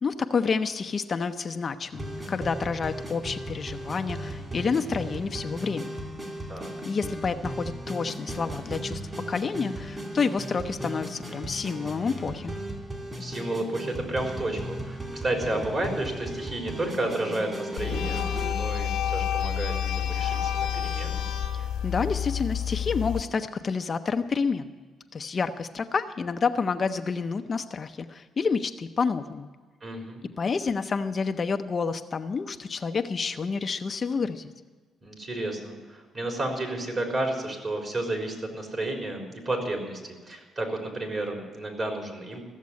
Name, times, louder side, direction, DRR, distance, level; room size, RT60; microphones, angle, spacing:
voice 1, 0.0-6.0 6.9-9.0 9.3-12.5 21.6-24.7 25.1-29.5 30.4-34.5, left 5 dB, 40° left, 8 dB, 0.6 m, -29 dB
sound 1, 1.9-18.5, right 1 dB, 25° right, 2.9 m, -36 dB
voice 2, 13.2-21.2 29.8-30.2 35.0-40.0 40.3-42.4, right 2 dB, 40° right, 1 dB, 3.9 m, -31 dB
sound 2, 17.8-23.2, left 9 dB, 85° left, 1.2 m, -29 dB
15.0 x 7.4 x 9.6 m, 1.4 s
cardioid pair, 90°, 0 cm